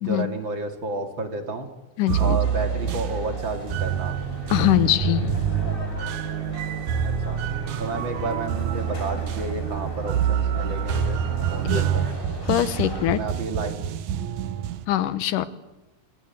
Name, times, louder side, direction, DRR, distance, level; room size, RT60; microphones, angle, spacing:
voice 1, 0.0-1.7 2.2-4.2 7.0-7.4 7.8-11.2 11.5-12.0 13.1-13.8, right 3 dB, 40° right, 6 dB, 2.7 m, -31 dB
voice 2, 2.0-2.4 4.5-5.4 11.7-11.8 12.5-13.2 14.9-15.5, left 13 dB, 85° left, 14 dB, 2.7 m, -22 dB
sound 1, 2.1-14.8, right 9 dB, 70° right, 2.3 m, -27 dB
sound 2, 2.4-13.1, left 1 dB, 15° left, 3.8 m, -37 dB
27.0 x 20.5 x 9.3 m, 1.1 s
omnidirectional pair, 3.6 m